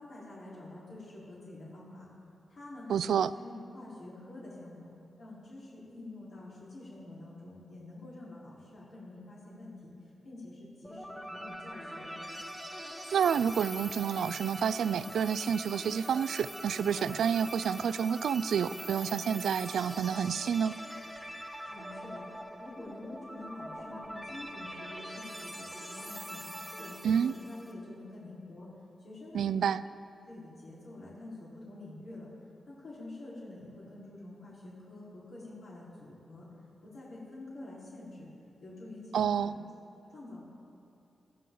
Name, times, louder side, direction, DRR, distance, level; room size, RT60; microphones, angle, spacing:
voice 1, 0.0-2.1 2.5-4.9 5.2-12.1 21.6-22.2 22.6-26.4 26.7-28.7 29.0-29.8 30.3-32.3 32.7-36.5 36.8-38.3 38.6-39.6 40.1-40.4, left 2 dB, 60° left, -7 dB, 4.3 m, -47 dB
voice 2, 2.9-3.3 13.1-20.8 27.0-27.3 29.3-29.8 39.1-39.6, right 7 dB, 90° right, 16 dB, 0.3 m, -29 dB
sound 1, 10.8-27.7, equal, 5° right, 1.5 m, -43 dB
19.0 x 14.5 x 3.9 m, 2.8 s
wide cardioid pair, 105°, 0 cm